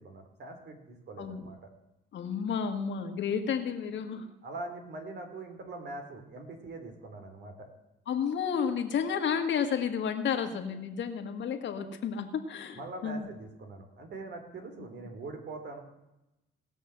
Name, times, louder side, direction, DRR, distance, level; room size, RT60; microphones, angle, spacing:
voice 1, 0.0-1.7 4.4-7.7 12.7-15.8, right 2 dB, 60° right, 5 dB, 3.3 m, -43 dB
voice 2, 1.2-1.5 2.1-4.3 8.1-13.3, left 7 dB, 70° left, 6 dB, 1.7 m, -31 dB
18.5 x 6.4 x 7.9 m, 0.92 s
cardioid pair, 90°, 20 cm